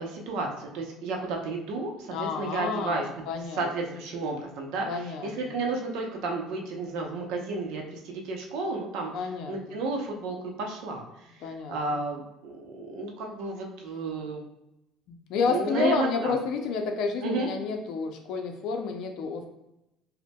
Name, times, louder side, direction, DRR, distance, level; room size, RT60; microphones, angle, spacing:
voice 1, 0.0-3.2 3.6-9.1 9.5-14.4 15.5-16.3 17.2-17.5, right 3 dB, 70° right, 1 dB, 0.7 m, -32 dB
voice 2, 2.1-3.7 4.9-5.6 9.1-9.8 11.4-12.0 15.1-19.5, left 5 dB, 55° left, 4 dB, 0.5 m, -30 dB
5.3 x 2.1 x 2.2 m, 0.90 s
cardioid pair, 170°, 0 cm